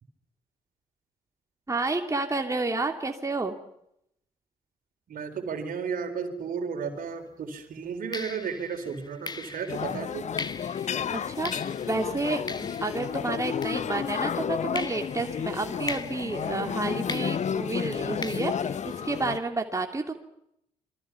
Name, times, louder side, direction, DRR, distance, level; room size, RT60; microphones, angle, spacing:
voice 1, 1.7-3.5 11.1-20.1, right 3 dB, 20° right, 3 dB, 3.0 m, -30 dB
voice 2, 5.1-10.3, right 6 dB, 55° right, 6 dB, 3.9 m, -33 dB
sound 1, 7.0-7.2 8.1-14.3 14.8-19.5, left 3 dB, 25° left, 1.6 m, -41 dB
sound 2, 9.7-19.4, left 8 dB, 45° left, 0.9 m, -32 dB
27.0 x 23.5 x 6.0 m, 0.77 s
hypercardioid pair, 45°, 17 cm